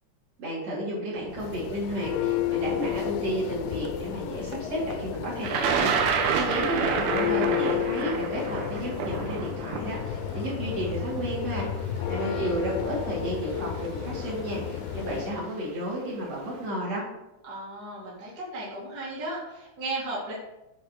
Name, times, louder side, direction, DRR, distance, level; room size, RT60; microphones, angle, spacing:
voice 1, 0.4-17.0, right 1 dB, 55° right, -6 dB, 3.7 m, -32 dB
Church bell, 1.2-15.4, left 10 dB, 80° left, 2.0 m, -32 dB
Thunder, 5.4-11.4 12.4-12.5 13.6-13.9 14.2-14.6, right 6 dB, 75° right, 2.2 m, -28 dB
voice 2, 6.1-7.0 11.9-12.5 17.4-20.3, right 2 dB, 35° right, -6 dB, 2.1 m, -36 dB
8.0 x 3.8 x 6.3 m, 0.95 s
omnidirectional pair, 3.6 m